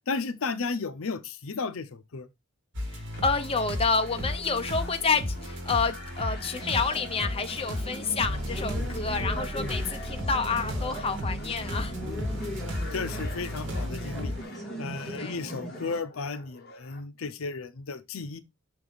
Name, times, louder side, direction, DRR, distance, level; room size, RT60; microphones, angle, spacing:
voice 1, 0.1-2.3 8.7-8.9 9.6-9.7 12.0-12.6 12.9-14.3 14.8-18.4, left 4 dB, 65° left, 0.6 m, -34 dB
sound 1, 2.7-14.4, left 1 dB, 55° right, 2.2 m, -34 dB
voice 2, 2.9-11.9 15.2-15.4, left 4 dB, 25° left, 0.6 m, -29 dB
sound 2, 3.1-17.0, left 4 dB, 45° left, 1.4 m, -48 dB
sound 3, 6.3-16.0, right 1 dB, ahead, 2.1 m, -39 dB
5.9 x 4.7 x 3.9 m
head